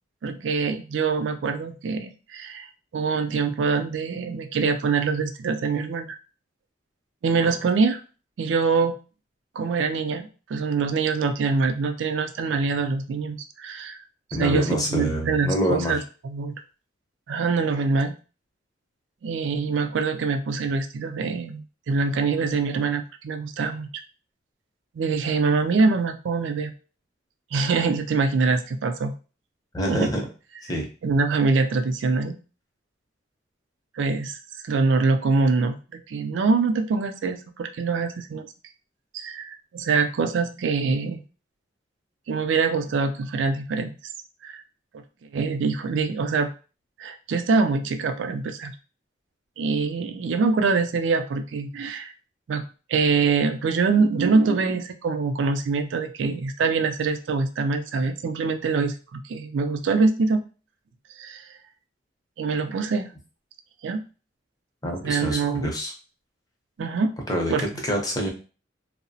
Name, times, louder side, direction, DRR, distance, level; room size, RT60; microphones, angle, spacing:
voice 1, 0.2-2.7 2.9-6.1 7.2-8.0 8.4-9.0 9.6-14.0 14.4-16.6 17.3-18.1 19.2-23.9 25.0-26.7 27.5-29.1 29.9-30.1 31.0-32.3 34.0-34.4 34.6-38.5 39.1-41.2 42.3-43.9 44.4-44.6 45.3-46.5 47.0-48.7 49.6-52.1 52.5-52.6 52.9-60.4 61.2-61.4 62.4-63.1 63.8-64.0 65.0-65.7 66.8-67.1 67.5-67.6, right 4 dB, 85° right, 7 dB, 0.4 m, -24 dB
voice 2, 14.3-16.0 29.7-30.2 30.7-30.9 64.8-65.9 67.3-68.3, equal, 20° left, 0 dB, 0.5 m, -26 dB
2.7 x 2.0 x 2.6 m, 0.34 s
head